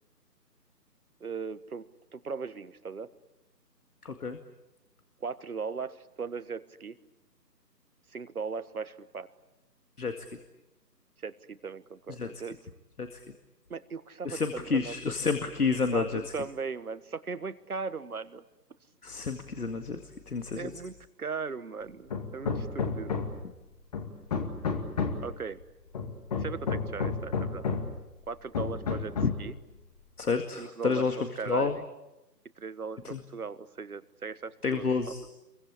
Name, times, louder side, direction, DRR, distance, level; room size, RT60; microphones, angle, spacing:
voice 1, 1.2-3.1 5.2-7.0 8.1-9.3 11.2-12.6 13.7-15.0 15.7-16.1 16.3-18.4 20.6-23.2 25.2-25.6 26.4-27.7 28.3-29.5 30.6-31.1 31.4-31.8 32.6-34.9, right 5 dB, 60° right, 14 dB, 1.5 m, -38 dB
voice 2, 4.0-4.4 10.0-10.1 12.2-12.3 13.0-13.2 14.3-16.2 19.0-20.0 20.3-20.7 29.2-29.3 30.2-31.2 31.5-31.8 33.0-33.2 34.6-35.2, left 4 dB, 60° left, 7 dB, 2.2 m, -29 dB
Hammer, 22.1-23.5 23.9-25.3 25.9-28.0 28.5-29.5, left 5 dB, 25° left, 2.2 m, -31 dB
28.0 x 23.0 x 8.5 m, 0.96 s
figure-of-eight pair, 155°, 50 cm